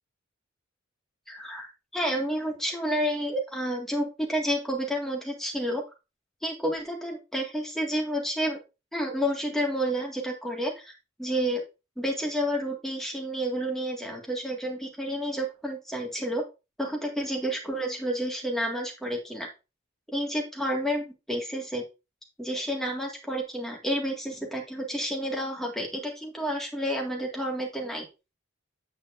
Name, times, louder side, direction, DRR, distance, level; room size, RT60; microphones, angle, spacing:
voice 1, 1.3-5.8 6.4-8.6 8.9-11.6 12.0-16.4 16.8-19.5 20.1-21.8 22.4-28.1, equal, ahead, 0 dB, 1.8 m, -30 dB
8.4 x 6.6 x 2.6 m, 0.28 s
head